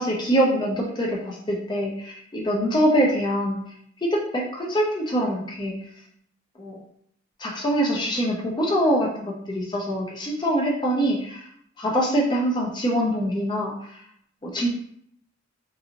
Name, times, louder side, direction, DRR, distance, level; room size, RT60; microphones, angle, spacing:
voice 1, 0.0-3.6 4.0-5.8 6.6-6.8 7.4-11.5 11.8-14.0 14.4-14.7, equal, 25° left, -2 dB, 0.5 m, -24 dB
3.9 x 2.5 x 2.8 m, 0.68 s
head